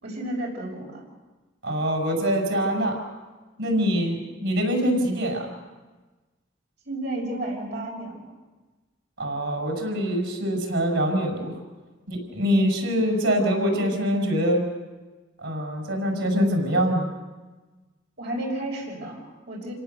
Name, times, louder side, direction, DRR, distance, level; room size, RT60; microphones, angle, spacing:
voice 1, 0.0-1.0 6.8-8.3 18.2-19.7, right 1 dB, 60° right, -2 dB, 5.9 m, -32 dB
voice 2, 1.6-3.0 3.6-5.5 9.2-11.6 12.1-14.6 15.4-17.1, equal, 85° right, 2 dB, 6.2 m, -24 dB
27.5 x 17.5 x 7.0 m, 1.3 s
head